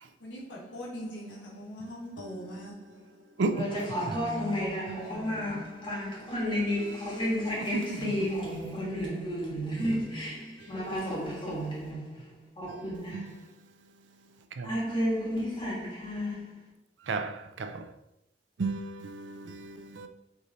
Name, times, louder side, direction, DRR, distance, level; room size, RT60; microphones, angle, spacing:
voice 1, 0.0-5.7 9.8-10.7, equal, 80° left, 1.5 m, -42 dB
voice 2, 3.5-13.5 14.6-16.7, equal, 25° left, 1.4 m, -32 dB
voice 3, 17.1-17.9 18.6-20.1, right 3 dB, 75° right, 0.4 m, -33 dB
4.7 x 2.7 x 3.9 m
head